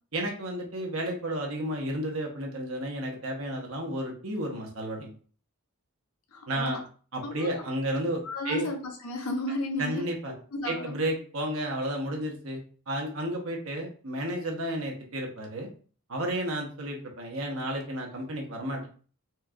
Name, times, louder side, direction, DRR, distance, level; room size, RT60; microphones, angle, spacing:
voice 1, 0.1-5.1 6.5-6.8 7.1-8.7 9.8-10.3 10.6-15.7 16.1-18.9, right 1 dB, 70° right, 1 dB, 1.2 m, -32 dB
voice 2, 6.3-6.8 7.2-7.7 8.2-10.1 10.5-11.1, left 2 dB, 90° left, 2 dB, 1.0 m, -33 dB
4.4 x 3.3 x 2.5 m, 0.41 s
head